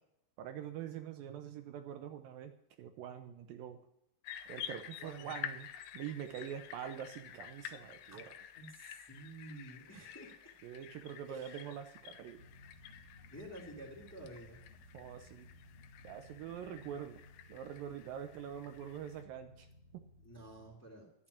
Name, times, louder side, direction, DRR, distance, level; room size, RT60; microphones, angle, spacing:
voice 1, 0.4-2.5 2.8-3.8 4.5-5.7 5.9-8.4 10.6-12.4 14.9-15.5 16.0-17.2 17.5-19.7 19.9-20.0, right 9 dB, 75° right, 7 dB, 2.4 m, -45 dB
sound 1, 4.2-19.2, left 10 dB, 80° left, 2.5 m, -50 dB
voice 2, 5.0-5.4 8.1-8.2 8.5-10.5 11.3-11.6 13.3-14.6 17.8-18.0 20.2-21.1, right 1 dB, 5° left, 0 dB, 2.4 m, -51 dB
sound 2, 12.3-20.7, left 2 dB, 50° left, 1.0 m, -59 dB
12.0 x 8.8 x 9.9 m, 0.82 s
omnidirectional pair, 4.4 m